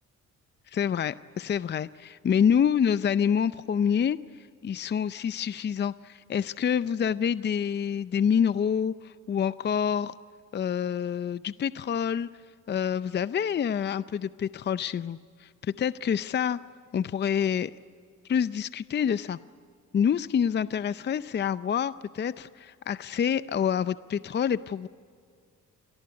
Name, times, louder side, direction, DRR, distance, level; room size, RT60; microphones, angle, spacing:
voice 1, 0.7-4.2 4.6-10.2 10.5-12.3 12.7-16.6 16.9-17.7 18.3-19.4 19.9-24.9, left 8 dB, 35° left, 15 dB, 0.6 m, -27 dB
27.5 x 19.5 x 9.6 m, 2.1 s
cardioid pair, 90°, 30 cm